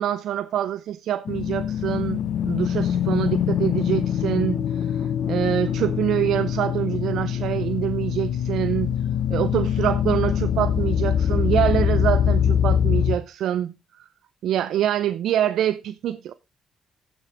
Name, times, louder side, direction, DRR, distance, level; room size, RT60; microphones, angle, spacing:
voice 1, 0.0-9.0 9.3-13.7 14.4-16.3, right 11 dB, 75° right, 0.5 m, -25 dB
sound 1, 1.2-13.1, left 9 dB, 70° left, 0.8 m, -23 dB
16.0 x 6.2 x 3.4 m
cardioid pair, 90°, 0 cm